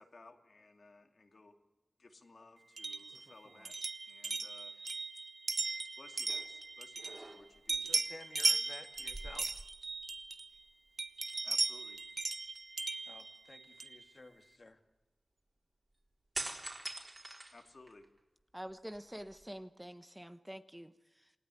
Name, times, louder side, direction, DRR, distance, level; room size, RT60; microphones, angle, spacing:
voice 1, 0.0-1.5 2.0-3.8 4.1-4.7 6.0-8.0 11.4-12.0 17.5-18.1, left 3 dB, 60° left, 5 dB, 2.5 m, -58 dB
sound 1, 2.8-7.4 7.7-10.6 11.0-14.0, right 3 dB, 55° right, 1.0 m, -37 dB
sound 2, 6.3-6.6 7.0-7.8 9.0-10.2 10.5-10.7 16.3-18.2 18.7-19.6, right 2 dB, 30° right, 4.3 m, -45 dB
voice 2, 7.8-9.5 13.1-14.8, left 2 dB, 45° left, 7 dB, 2.3 m, -54 dB
voice 3, 18.5-21.3, equal, 10° right, 10 dB, 1.1 m, -47 dB
28.0 x 18.0 x 9.8 m, 1.1 s
wide cardioid pair, 80°, 0 cm